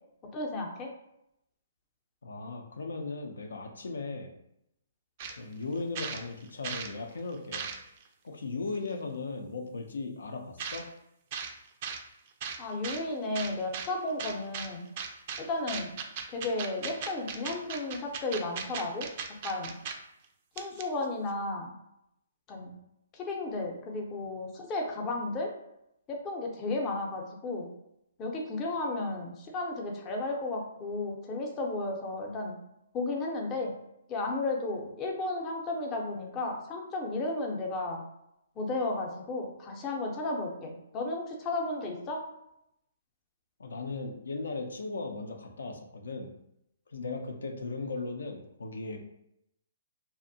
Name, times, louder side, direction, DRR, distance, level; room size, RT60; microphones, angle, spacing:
voice 1, 0.3-0.9 12.6-14.8 15.4-15.9 16.3-19.1 19.4-19.7 20.6-21.7 22.5-22.7 23.1-25.5 26.1-27.7 28.2-32.5 32.9-33.7 34.1-38.0 38.6-42.2, left 2 dB, 25° left, 0 dB, 0.5 m, -33 dB
voice 2, 2.2-4.3 5.4-7.7 8.2-10.9 43.6-46.3 46.9-49.0, left 3 dB, 85° left, 3 dB, 0.4 m, -37 dB
sound 1, 5.2-5.4 5.7-6.9 7.3-8.0 8.9-9.0 10.6-10.8 11.3-11.5 11.8-12.0 12.4-13.0 13.4-13.9 14.2-14.7 15.0-15.4 15.7-19.9 20.2-20.3 20.6-21.0, right 6 dB, 40° right, 0.3 m, -37 dB
2.5 x 2.0 x 2.6 m, 0.81 s
hypercardioid pair, 145°, 0 cm